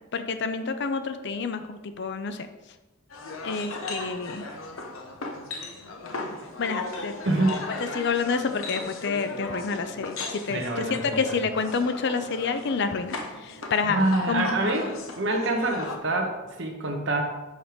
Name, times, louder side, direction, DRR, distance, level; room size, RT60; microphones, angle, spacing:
voice 1, 0.1-2.5 3.4-4.4 6.6-7.1 7.9-14.0 14.3-14.5, left 5 dB, 60° left, 9 dB, 0.6 m, -28 dB
sound 1, 3.1-16.0, left 3 dB, 90° left, 1.0 m, -37 dB
voice 2, 7.2-7.6 10.5-11.4 13.9-14.9 15.2-17.2, right 2 dB, 60° right, 3 dB, 1.1 m, -26 dB
6.5 x 4.5 x 5.1 m, 1.1 s
head